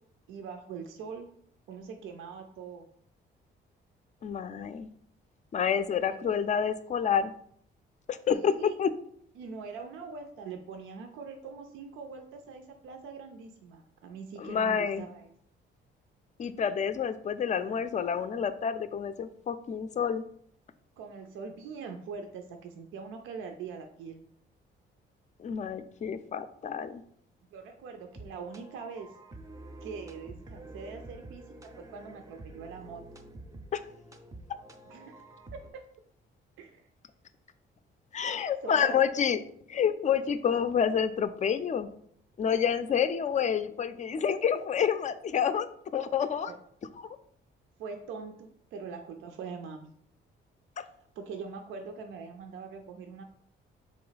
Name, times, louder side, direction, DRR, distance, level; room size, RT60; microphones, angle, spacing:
voice 1, 0.3-1.3 1.7-2.9 6.1-6.4 8.3-8.8 9.4-15.3 21.0-24.2 27.5-29.1 29.8-33.0 34.9-35.2 35.5-35.8 36.6-36.9 38.2-39.0 46.5-46.6 47.8-49.9 51.2-53.2, right 5 dB, 85° right, 5 dB, 0.5 m, -43 dB
voice 2, 4.2-4.9 5.5-7.3 8.1-8.9 14.4-15.1 16.4-20.2 25.4-27.0 33.7-33.8 38.1-39.4 39.7-41.9 42.4-45.7 45.9-46.5 47.0-47.1 50.8-50.9, left 7 dB, 35° left, 11 dB, 0.4 m, -28 dB
sound 1, 27.9-35.7, right 2 dB, 15° right, 0.5 m, -48 dB
3.8 x 3.1 x 4.0 m, 0.66 s
cardioid pair, 90°, 20 cm